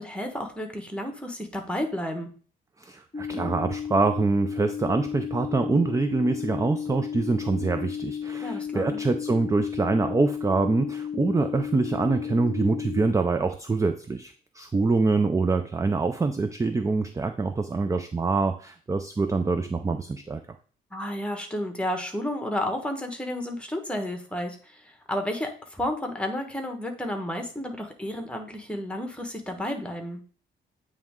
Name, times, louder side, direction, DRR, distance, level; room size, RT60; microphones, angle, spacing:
voice 1, 0.0-2.3 8.4-9.0 20.9-30.2, left 1 dB, 5° left, 4 dB, 1.2 m, -32 dB
voice 2, 2.8-20.4, right 3 dB, 15° right, 9 dB, 0.4 m, -25 dB
sound 1, 3.1-13.1, left 8 dB, 30° left, 0.9 m, -33 dB
8.8 x 3.2 x 3.6 m, 0.42 s
cardioid pair, 90°, 20 cm